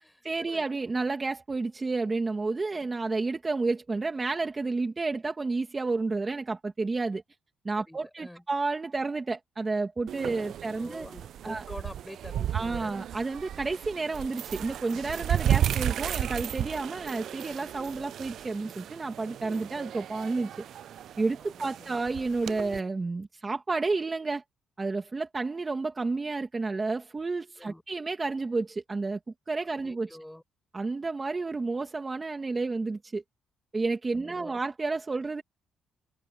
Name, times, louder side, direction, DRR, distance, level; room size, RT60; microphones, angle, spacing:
voice 1, 0.3-7.2 7.6-11.1 11.4-11.6 12.5-20.5 21.2-24.4 24.8-29.2 29.5-30.2 30.7-33.2 33.7-35.4, right 3 dB, 25° right, 1.9 m, -31 dB
voice 2, 7.8-8.4 10.8-12.9 21.4-21.9 27.6-27.8 29.8-30.4 34.1-34.6, left 1 dB, 5° left, 6.1 m, -46 dB
sound 1, 10.1-22.8, right 11 dB, 70° right, 0.4 m, -34 dB
cardioid pair, 90°, 0 cm